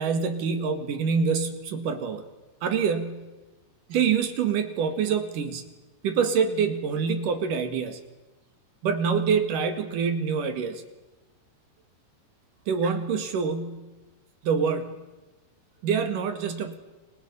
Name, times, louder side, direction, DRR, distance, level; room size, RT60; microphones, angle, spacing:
voice 1, 0.0-2.3 2.6-3.3 3.9-5.7 6.0-8.0 8.8-10.8 12.7-13.9 14.4-15.0 15.8-16.7, right 6 dB, 55° right, 7 dB, 3.0 m, -26 dB
29.5 x 24.5 x 5.6 m, 1.1 s
omnidirectional pair, 5.3 m